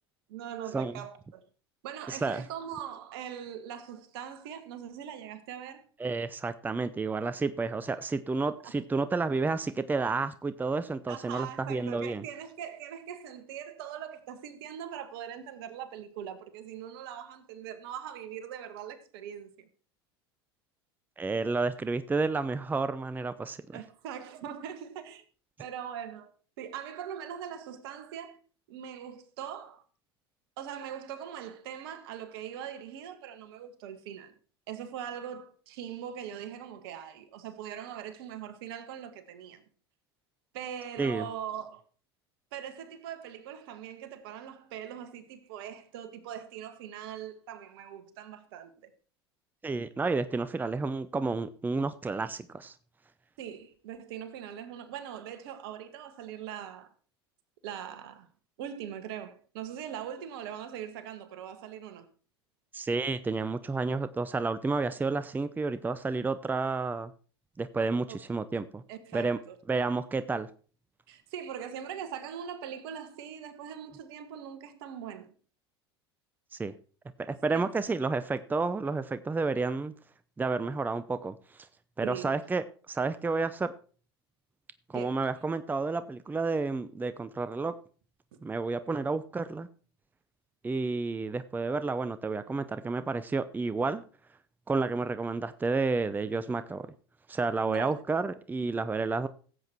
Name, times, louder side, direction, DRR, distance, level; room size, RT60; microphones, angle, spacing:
voice 1, 0.3-1.5 1.8-5.8 11.1-19.7 23.7-25.2 25.6-26.3 26.6-28.4 28.7-29.8 30.6-34.3 34.7-39.6 40.5-41.8 42.5-48.9 53.4-56.9 57.6-58.3 58.6-62.1 68.1-68.2 68.9-69.6 71.1-75.3 77.5-77.7 82.0-82.3 84.9-85.2 97.6-98.0, right 9 dB, 65° right, 1.8 m, -41 dB
voice 2, 2.1-2.4 6.0-12.2 21.2-23.8 41.0-41.3 49.6-52.7 62.7-67.1 67.6-68.8 69.1-69.4 69.7-70.5 76.5-76.7 77.3-79.9 80.4-81.4 82.0-83.7 84.9-87.7 88.4-89.7 90.6-94.0 94.7-96.9 97.3-99.3, right 3 dB, 15° right, 0.7 m, -30 dB
16.0 x 8.1 x 4.5 m
hypercardioid pair, 80°, 13 cm